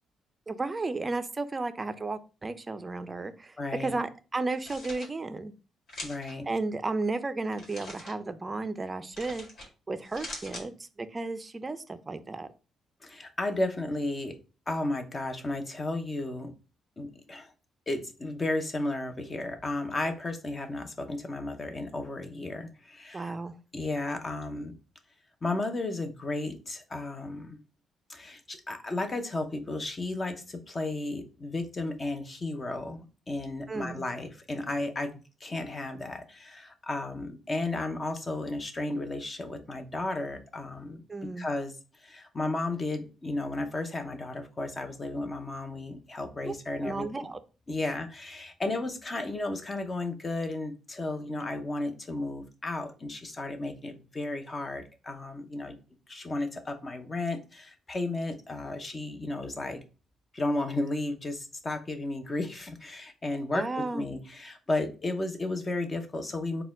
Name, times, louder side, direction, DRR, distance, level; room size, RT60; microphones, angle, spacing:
voice 1, 0.5-5.5 6.5-9.5 9.9-12.5 23.1-23.5 33.7-34.1 41.1-41.5 46.5-46.6 46.8-47.4 63.5-64.1, right 3 dB, 25° right, 12 dB, 0.4 m, -33 dB
voice 2, 3.6-3.9 6.0-6.5 13.0-14.4 14.7-16.5 17.0-17.5 17.9-23.3 23.7-24.7 25.4-27.6 28.1-41.0 41.4-47.0 47.7-55.8 56.1-59.8 60.3-66.6, left 2 dB, 30° left, 7 dB, 0.7 m, -33 dB
sound 1, 4.4-5.1 5.9-6.3 7.5-8.1 9.1-9.7 10.0-10.6, left 2 dB, 60° left, 1.5 m, -42 dB
4.1 x 2.2 x 3.6 m, 0.33 s
cardioid pair, 90°, 0 cm